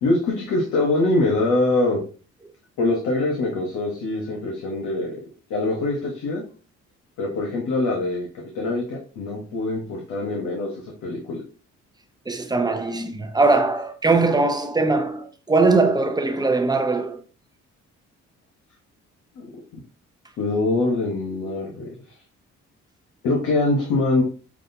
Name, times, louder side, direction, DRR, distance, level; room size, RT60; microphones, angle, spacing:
voice 1, 0.0-2.0 2.8-5.2 5.5-6.4 7.2-11.4 19.4-19.5 20.4-21.9 23.2-24.2, left 2 dB, 90° left, 1.1 m, -23 dB
voice 2, 12.3-17.2, right 3 dB, 15° right, 0.7 m, -21 dB
5.9 x 2.4 x 2.7 m
cardioid pair, 95°, 29 cm